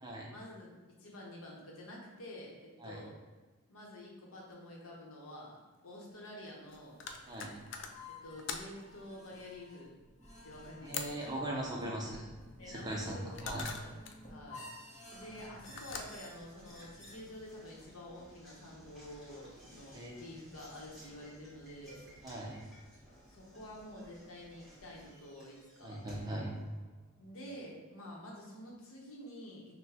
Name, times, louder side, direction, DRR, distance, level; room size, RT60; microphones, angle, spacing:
voice 1, 0.3-3.2 3.7-5.6 5.8-7.0 8.1-9.9 10.4-11.3 11.7-12.1 12.6-14.0 14.2-14.6 15.1-22.1 23.3-26.0 27.2-29.8, left 1 dB, 70° left, -2 dB, 0.9 m, -49 dB
sound 1, 4.5-4.6 4.8-4.9 6.1-8.9 10.8-11.3 12.9-14.2 15.2-16.9, left 5 dB, 55° left, 0.3 m, -45 dB
voice 2, 7.3-7.6 10.8-12.3 12.7-13.6 19.9-20.1 22.2-22.6 25.8-26.5, right 1 dB, 20° right, -2 dB, 0.5 m, -39 dB
sound 2, 7.8-17.1, left 2 dB, 30° left, 0.9 m, -53 dB
Knock, 15.1-27.3, equal, ahead, 1.2 m, -58 dB
5.8 x 2.2 x 2.8 m, 1.3 s
head